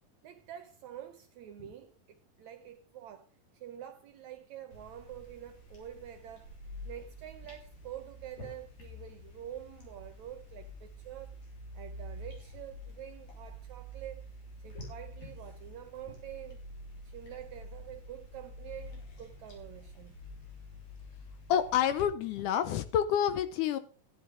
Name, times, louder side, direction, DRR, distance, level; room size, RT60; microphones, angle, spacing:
voice 1, 0.2-6.5 6.8-11.4 11.7-14.3 14.6-16.6 17.0-20.2, right 11 dB, 75° right, 1.7 m, -47 dB
sound 1, 4.7-22.1, left 1 dB, 55° left, 5.2 m, -48 dB
voice 2, 21.5-23.8, left 9 dB, 75° left, 2.0 m, -28 dB
14.5 x 10.5 x 3.7 m
omnidirectional pair, 4.1 m